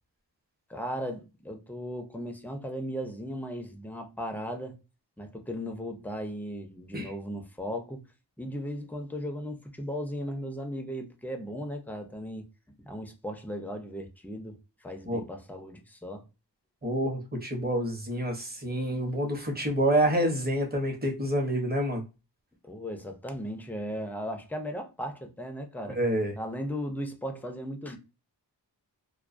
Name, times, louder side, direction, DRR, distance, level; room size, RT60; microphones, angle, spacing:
voice 1, 0.7-4.8 5.2-8.0 8.4-12.5 12.8-16.2 22.6-26.0 26.4-28.0, equal, 5° left, 0.5 m, -36 dB
voice 2, 16.8-22.0 25.9-26.3, right 1 dB, 20° right, 0.8 m, -28 dB
2.2 x 2.2 x 2.5 m
wide cardioid pair, 65°, 43 cm